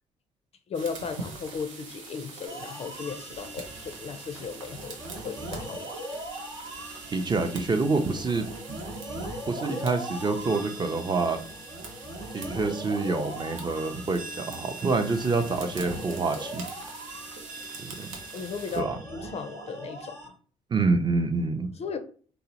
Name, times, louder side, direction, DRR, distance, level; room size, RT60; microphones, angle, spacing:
voice 1, 0.7-5.9 18.3-20.3 21.8-22.0, left 5 dB, 45° left, 8 dB, 0.4 m, -36 dB
sound 1, 0.7-18.8, right 4 dB, 85° right, 0.5 m, -44 dB
sound 2, 2.5-20.3, right 1 dB, 70° right, 0.9 m, -40 dB
voice 2, 7.1-8.8 9.5-11.4 12.3-16.6 17.8-18.1 18.7-19.0 20.7-21.7, right 3 dB, 30° right, 6 dB, 0.5 m, -27 dB
2.7 x 2.0 x 2.8 m, 0.43 s
hypercardioid pair, 45°, 15 cm